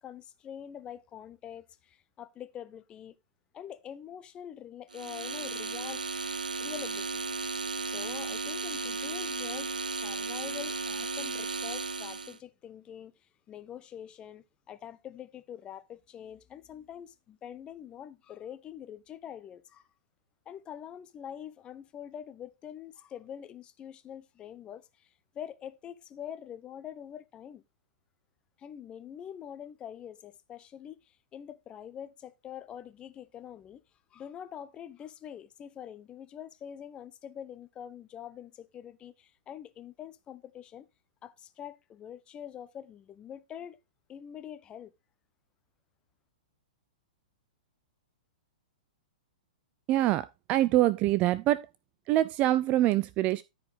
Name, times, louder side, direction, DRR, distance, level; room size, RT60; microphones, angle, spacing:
voice 1, 0.0-3.1 3.5-6.0 6.6-7.1 7.8-9.7 10.0-13.1 13.5-19.9 20.5-27.6 28.6-33.8 34.1-40.9 41.2-43.8 44.1-44.9, left 9 dB, 20° left, 0.8 m, -45 dB
sound 1, 4.9-12.4, right 4 dB, 75° right, 0.7 m, -35 dB
voice 2, 49.9-51.7 52.1-53.4, right 15 dB, 30° right, 0.4 m, -25 dB
13.5 x 4.8 x 3.5 m
figure-of-eight pair, 110°, 4 cm